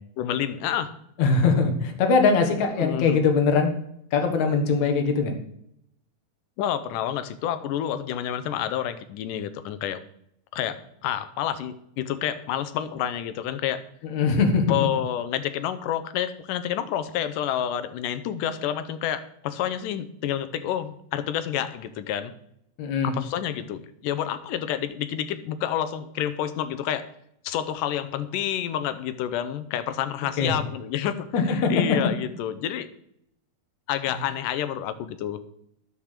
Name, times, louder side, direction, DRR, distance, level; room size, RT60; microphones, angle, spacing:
voice 1, 0.2-0.9 2.8-3.2 6.6-10.0 10.5-13.8 14.7-22.3 23.0-27.1 27.4-32.9 33.9-35.4, left 10 dB, 75° left, 11 dB, 2.3 m, -29 dB
voice 2, 1.2-3.7 4.1-5.3 14.0-14.8 22.8-23.1 30.4-30.6 31.3-31.7, left 4 dB, 60° left, 4 dB, 2.7 m, -21 dB
10.5 x 7.5 x 6.5 m, 0.73 s
omnidirectional pair, 4.0 m